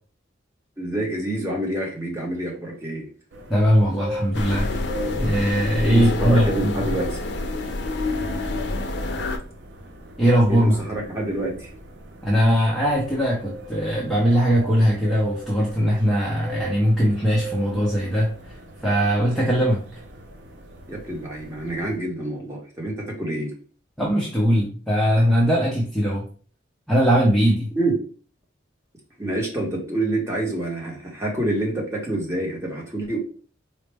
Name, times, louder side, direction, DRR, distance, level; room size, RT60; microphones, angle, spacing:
voice 1, 0.8-3.1 5.8-7.2 10.5-11.7 20.9-23.5 27.8-27.9 29.2-33.2, right 1 dB, 15° right, -2 dB, 0.9 m, -27 dB
sound 1, 3.3-22.0, right 1 dB, 65° right, 0.6 m, -40 dB
voice 2, 3.5-4.7 5.2-7.0 10.2-10.8 12.2-18.5 18.8-20.0 24.0-26.3 26.9-27.7, equal, ahead, -5 dB, 0.5 m, -20 dB
sound 2, 4.3-9.4, left 2 dB, 65° left, 0.5 m, -27 dB
4.1 x 2.0 x 3.3 m, 0.41 s
head